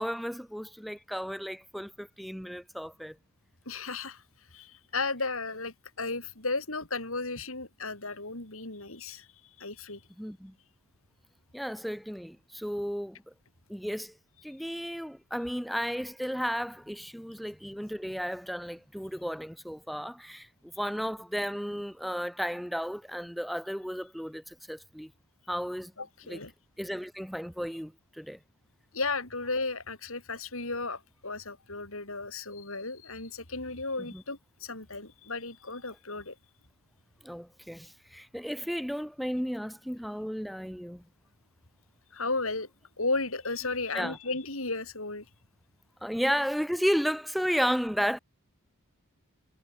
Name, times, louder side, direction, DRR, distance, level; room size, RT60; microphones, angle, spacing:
voice 1, 0.0-3.2 10.2-10.5 11.5-13.2 13.7-14.1 14.4-25.1 25.5-25.9 26.2-26.4 26.8-28.4 34.1-34.2 37.2-41.0 43.9-44.2 46.0-48.2, equal, ahead, 7.8 m, -33 dB
voice 2, 3.7-4.2 4.5-9.3 9.6-10.0 26.0-26.5 28.9-36.3 42.1-42.7 43.0-45.2, left 3 dB, 70° left, 5.9 m, -34 dB
head